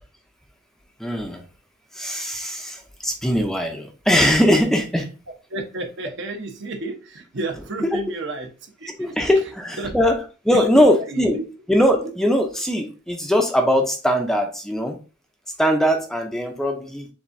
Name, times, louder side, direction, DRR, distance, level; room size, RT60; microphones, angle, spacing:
voice 1, 1.0-1.5 1.9-5.1 7.8-7.9 9.0-10.1 10.4-11.4 11.7-15.0 15.6-17.1, equal, ahead, 3 dB, 0.5 m, -20 dB
voice 2, 5.5-9.2 9.8-10.0 10.5-11.4, right 2 dB, 60° right, 4 dB, 0.9 m, -31 dB
7.0 x 2.7 x 2.6 m, 0.34 s
head